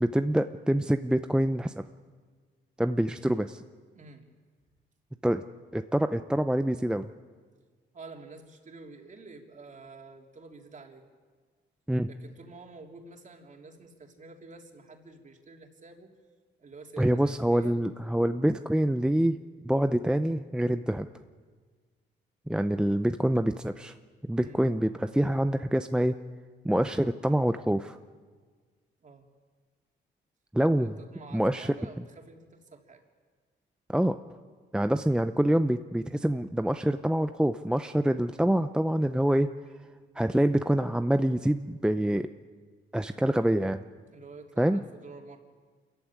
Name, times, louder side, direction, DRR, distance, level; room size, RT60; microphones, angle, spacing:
voice 1, 0.0-1.8 2.8-3.6 5.2-5.4 5.7-7.1 11.9-12.1 17.0-19.4 19.6-21.1 22.5-23.9 24.2-26.2 26.6-28.0 30.5-30.9 31.3-31.7 33.9-34.1 34.7-39.5 40.2-42.3 42.9-43.8 44.6-44.8, right 1 dB, 5° right, 9 dB, 0.7 m, -26 dB
voice 2, 7.9-11.0 12.1-16.1 16.6-17.8 24.4-24.6 29.0-29.2 30.7-33.0 44.1-45.4, right 3 dB, 40° right, 3 dB, 3.4 m, -49 dB
26.0 x 14.5 x 9.8 m, 1.6 s
cardioid pair, 90°, 20 cm